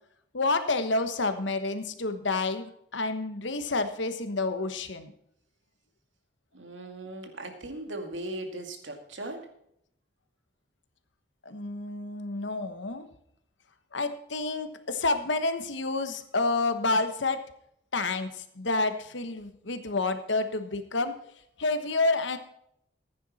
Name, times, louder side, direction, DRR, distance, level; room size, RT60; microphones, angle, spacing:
voice 1, 0.3-5.1 11.4-13.1 13.9-17.4 17.9-21.1 21.6-22.4, left 3 dB, 75° left, 8 dB, 1.2 m, -29 dB
voice 2, 6.5-9.5, right 1 dB, 80° right, 4 dB, 2.2 m, -38 dB
15.0 x 9.5 x 4.2 m, 0.73 s
head